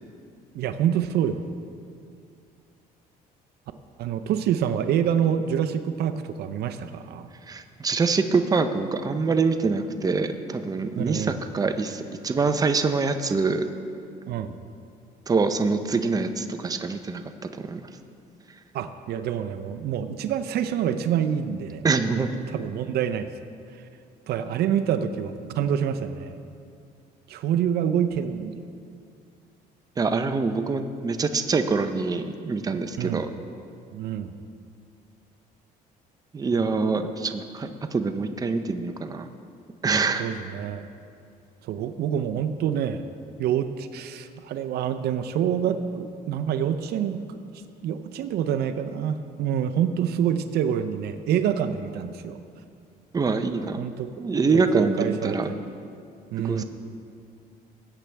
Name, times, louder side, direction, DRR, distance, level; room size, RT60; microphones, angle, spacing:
voice 1, 0.5-1.4 4.0-7.3 11.0-11.4 14.3-14.5 18.7-21.9 22.5-23.3 24.3-26.3 27.3-28.5 33.0-33.3 33.9-34.3 40.2-40.9 41.6-43.0 43.4-47.4 47.8-52.4 53.8-54.1 54.5-55.6 56.3-56.6, right 9 dB, 70° right, 9 dB, 0.6 m, -26 dB
voice 2, 7.5-13.6 15.3-17.2 17.6-17.8 21.8-22.3 30.0-33.3 36.3-39.3 39.8-40.2 53.1-53.8 54.2-55.5 56.4-56.6, right 4 dB, 20° right, 8 dB, 0.7 m, -25 dB
20.0 x 8.4 x 3.4 m, 2.4 s
cardioid pair, 110°, 17 cm